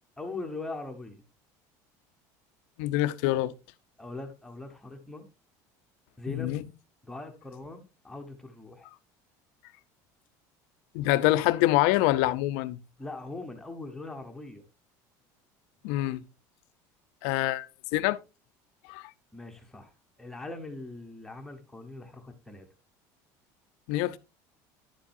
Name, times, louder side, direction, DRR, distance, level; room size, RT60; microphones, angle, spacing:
voice 1, 0.2-1.2 4.0-5.3 6.2-6.6 7.0-8.9 13.0-14.7 19.3-19.9 20.2-22.7, left 2 dB, 5° left, 0.9 m, -41 dB
voice 2, 2.8-3.5 6.3-6.6 10.9-12.8 15.8-16.3 17.2-17.7 17.9-18.2 18.9-19.1 23.9-24.2, left 16 dB, 70° left, 0.6 m, -25 dB
10.5 x 7.4 x 2.6 m
cardioid pair, 175°, 8 cm